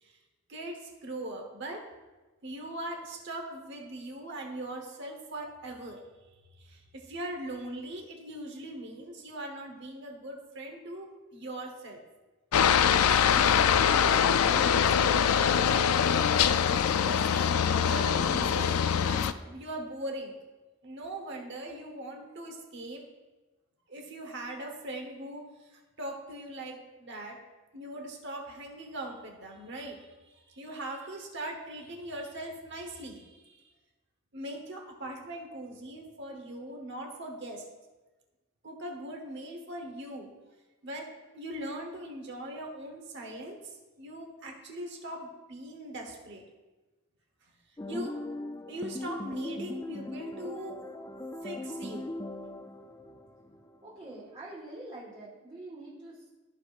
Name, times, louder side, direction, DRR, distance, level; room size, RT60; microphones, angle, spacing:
voice 1, 0.5-1.8 2.4-6.0 6.6-12.0 13.4-15.9 17.0-20.3 20.8-23.0 23.9-27.4 27.7-33.7 34.3-37.6 38.6-40.3 40.8-46.4 47.9-48.1 48.7-50.8 51.4-52.1, right 1 dB, 55° right, 2 dB, 1.1 m, -40 dB
Aircraft, 12.5-19.3, left 8 dB, 90° left, 0.4 m, -23 dB
sound 1, 47.8-54.2, left 1 dB, 15° left, 0.3 m, -40 dB
voice 2, 53.8-56.3, right 2 dB, 25° right, -8 dB, 1.6 m, -45 dB
13.5 x 4.9 x 2.5 m, 1.2 s
head